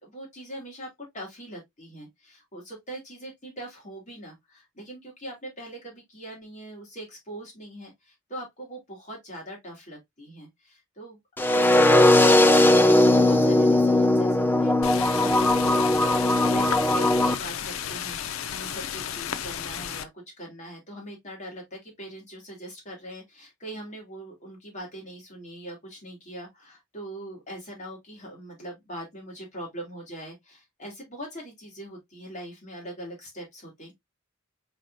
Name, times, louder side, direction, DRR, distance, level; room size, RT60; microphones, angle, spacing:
voice 1, 0.0-11.2 11.5-33.9, right 1 dB, 35° left, 2.5 m, -42 dB
sound 1, 11.4-17.4, left 1 dB, 10° left, 0.4 m, -19 dB
sound 2, 14.8-20.1, left 9 dB, 80° left, 0.5 m, -33 dB
4.9 x 4.2 x 2.5 m
head